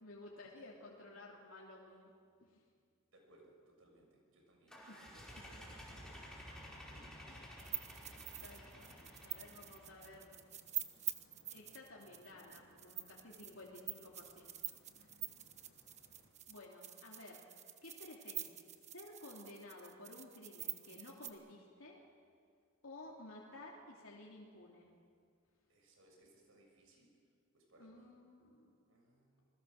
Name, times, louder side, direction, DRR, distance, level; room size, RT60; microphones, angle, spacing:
voice 1, 0.0-2.1 2.4-2.6 4.9-5.0 7.3-7.5 7.9-8.1 8.4-10.4 11.5-15.1 16.5-17.4 17.8-18.6 18.9-22.0 22.8-24.9 27.8-28.7, left 2 dB, 75° left, -3 dB, 3.0 m, -54 dB
voice 2, 3.1-7.5 13.1-13.3 25.7-27.2 27.5-28.1 28.9-29.5, right 1 dB, 70° right, 1 dB, 6.9 m, -66 dB
sound 1, 4.7-10.2, equal, 5° left, 4.6 m, -53 dB
sound 2, 6.0-16.3, left 1 dB, 50° left, 3.9 m, -69 dB
sound 3, 7.6-21.3, right 11 dB, 35° right, 1.2 m, -46 dB
27.5 x 21.0 x 6.6 m, 2.2 s
head